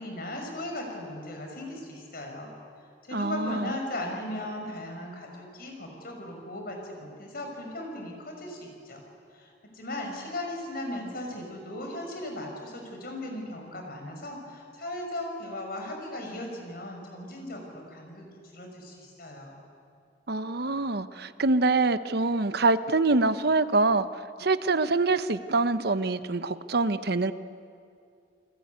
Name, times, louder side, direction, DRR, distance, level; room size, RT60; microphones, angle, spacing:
voice 1, 0.0-2.5 3.1-9.0 9.3-18.3 18.5-19.6, left 1 dB, 55° left, 2 dB, 6.1 m, -37 dB
voice 2, 3.1-3.7 20.3-24.1 24.4-27.3, right 3 dB, 60° right, 12 dB, 1.0 m, -25 dB
28.5 x 20.5 x 9.7 m, 2.4 s
head